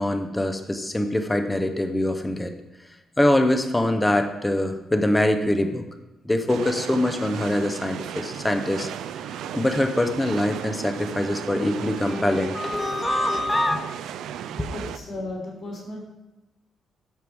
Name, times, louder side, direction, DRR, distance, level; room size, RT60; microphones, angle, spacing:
voice 1, 0.0-2.5 3.2-5.8 6.2-8.9 9.3-13.9 14.6-14.7, left 1 dB, 10° left, 6 dB, 0.6 m, -24 dB
sound 1, 6.5-15.0, right 9 dB, 85° right, 0.4 m, -35 dB
voice 2, 14.7-16.0, left 1 dB, 40° left, -5 dB, 3.1 m, -34 dB
13.0 x 4.7 x 3.4 m, 1.0 s
cardioid pair, 170°, 0 cm